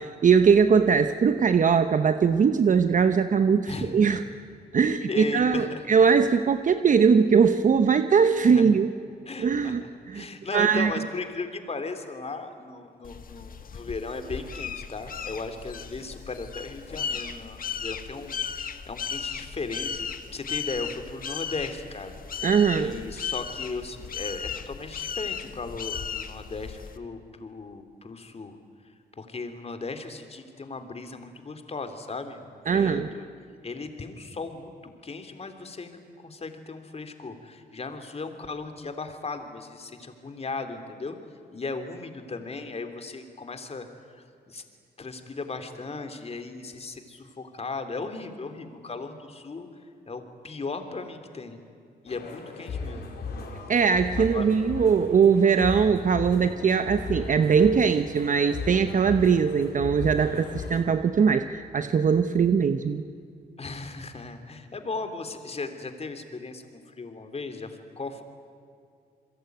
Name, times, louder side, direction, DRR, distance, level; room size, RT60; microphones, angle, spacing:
voice 1, 0.0-4.2 4.7-8.9 9.4-10.3 10.5-10.9 22.4-23.0 32.7-33.1 53.7-63.0, right 6 dB, 50° right, 10 dB, 1.0 m, -21 dB
voice 2, 5.1-5.8 8.5-8.6 9.3-9.8 10.1-22.2 22.8-28.5 29.2-33.3 33.6-34.7 35.0-36.0 36.2-41.2 41.5-44.6 45.0-49.7 50.1-51.6 52.0-53.1 54.2-54.5 63.6-66.6 66.9-68.2, left 3 dB, 35° left, 7 dB, 3.4 m, -37 dB
sound 1, 13.0-27.0, left 7 dB, 55° left, 1.6 m, -36 dB
sound 2, 52.1-60.8, left 4 dB, 75° left, 5.1 m, -36 dB
28.0 x 22.0 x 9.5 m, 2.4 s
cardioid pair, 85°, 17 cm